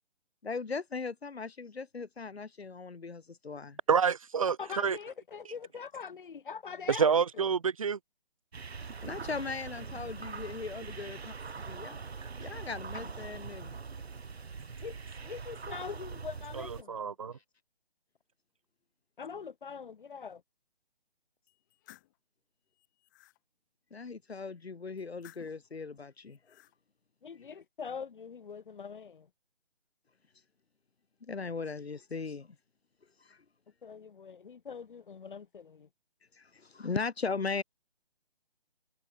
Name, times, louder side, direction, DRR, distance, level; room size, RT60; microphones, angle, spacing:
voice 1, 0.4-3.8 9.0-11.2 11.7-12.0 12.4-13.8 23.9-26.4 31.2-32.5 33.3-33.4 36.4-37.6, left 4 dB, 85° left, 2.5 m, -38 dB
voice 2, 3.9-5.0 6.9-8.0 16.9-17.3, right 6 dB, 35° right, 0.6 m, -27 dB
voice 3, 4.6-7.4 12.9-13.1 14.8-15.0 15.2-17.0 19.2-20.4 27.2-29.3 33.8-35.9, left 6 dB, 55° left, 1.8 m, -43 dB
sound 1, 8.5-16.8, right 5 dB, 90° right, 1.6 m, -42 dB
sound 2, 21.5-22.2 22.7-23.4 25.0-25.7 26.3-26.8, left 17 dB, 20° left, 3.0 m, -58 dB
hypercardioid pair, 165°, 31 cm